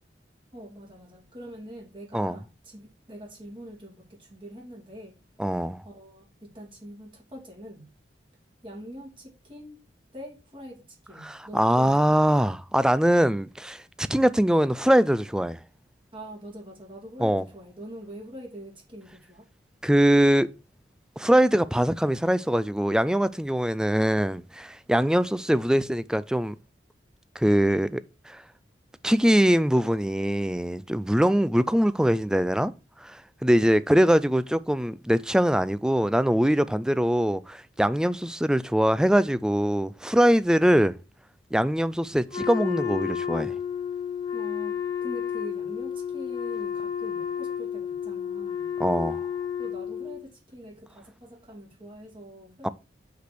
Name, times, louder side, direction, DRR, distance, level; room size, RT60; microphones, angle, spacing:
voice 1, 0.5-5.2 5.8-7.9 8.6-9.8 10.1-12.1 16.1-19.5 44.3-48.7 49.6-52.7, equal, 25° right, 2.6 m, -44 dB
voice 2, 5.4-5.8 11.2-15.6 17.2-17.4 19.8-20.5 21.2-26.5 27.4-28.4 29.0-32.7 33.0-40.9 41.5-43.5 48.8-49.2 52.6-52.7, equal, 5° right, 0.3 m, -22 dB
Wind instrument woodwind instrument, 42.3-50.2, left 8 dB, 25° left, 1.6 m, -31 dB
6.0 x 5.7 x 6.1 m
head